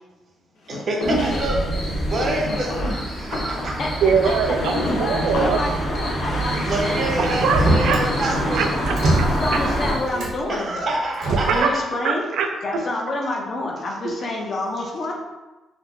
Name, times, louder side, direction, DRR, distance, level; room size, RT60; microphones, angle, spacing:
sound 1, 0.7-1.7 2.3-5.8, left 1 dB, 70° left, 0.7 m, -28 dB
voice 1, 0.7-3.8 6.7-8.7 10.5-11.9 14.0-14.1 14.8-14.9, right 2 dB, 35° right, -1 dB, 0.6 m, -27 dB
sound 2, 1.0-9.9, equal, 50° left, 1.3 m, -26 dB
voice 2, 4.0-5.6 7.2-9.3 11.3-11.7 12.0-12.5, right 6 dB, 85° right, 5 dB, 0.3 m, -23 dB
voice 3, 4.9-7.2 9.4-10.9 11.5-12.3 12.6-15.1, left 2 dB, 30° left, 0 dB, 0.5 m, -28 dB
Motor vehicle (road), 6.5-8.1 8.4-10.5 11.1-11.6, right 2 dB, 70° right, 0.9 m, -24 dB
3.5 x 2.0 x 4.0 m, 1.1 s
cardioid pair, 180°, 0 cm